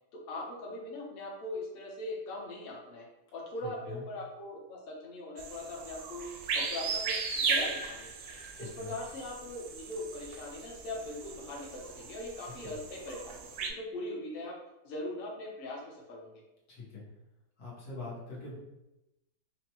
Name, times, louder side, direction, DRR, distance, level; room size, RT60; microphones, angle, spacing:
voice 1, 0.1-3.1 3.3-6.3 6.5-8.1 8.6-14.5 14.8-16.4, left 1 dB, 45° left, -3 dB, 0.9 m, -40 dB
voice 2, 3.6-4.0 8.5-8.9 12.6-12.7 16.7-17.0 17.6-18.6, left 3 dB, 75° left, -5 dB, 1.7 m, -43 dB
sound 1, 5.4-13.7, right 5 dB, 80° right, 1.1 m, -37 dB
5.2 x 2.2 x 2.9 m, 0.94 s
omnidirectional pair, 1.6 m